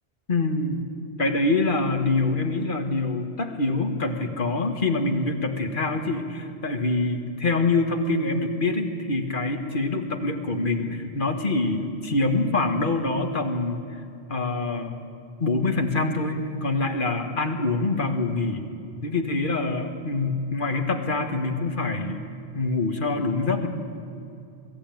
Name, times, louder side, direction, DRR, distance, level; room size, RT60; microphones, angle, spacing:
voice 1, 0.3-0.8 1.2-13.8 14.3-14.9 15.4-18.6 19.0-22.2 22.5-23.7, left 3 dB, 50° left, 5 dB, 1.8 m, -25 dB
23.0 x 14.5 x 9.1 m, 2.6 s
omnidirectional pair, 1.1 m